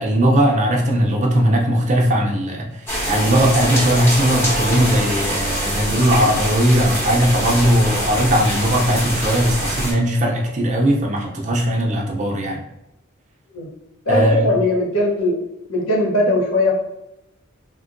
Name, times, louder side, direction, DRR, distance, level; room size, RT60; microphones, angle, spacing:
voice 1, 0.0-12.6 14.1-14.5, equal, 35° right, 1 dB, 0.5 m, -18 dB
sound 1, 2.9-9.9, equal, 10° left, 0.9 m, -24 dB
voice 2, 14.1-15.4 15.7-16.7, left 2 dB, 75° left, -1 dB, 0.7 m, -19 dB
3.7 x 2.1 x 2.5 m, 0.87 s
head